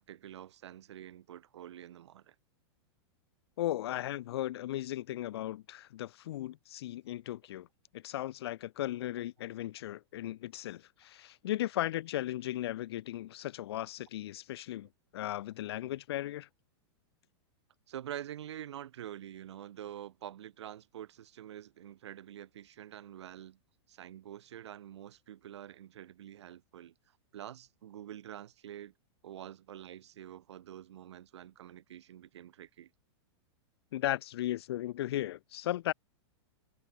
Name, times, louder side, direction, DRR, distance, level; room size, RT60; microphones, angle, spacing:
voice 1, 0.0-2.3 17.9-23.6 23.9-26.9 27.3-28.9 29.2-32.9, right 11 dB, 80° right, 2.4 m, -47 dB
voice 2, 3.6-7.7 7.9-16.5 33.9-35.9, left 14 dB, 65° left, 0.6 m, -36 dB
supercardioid pair, 165°, 14 cm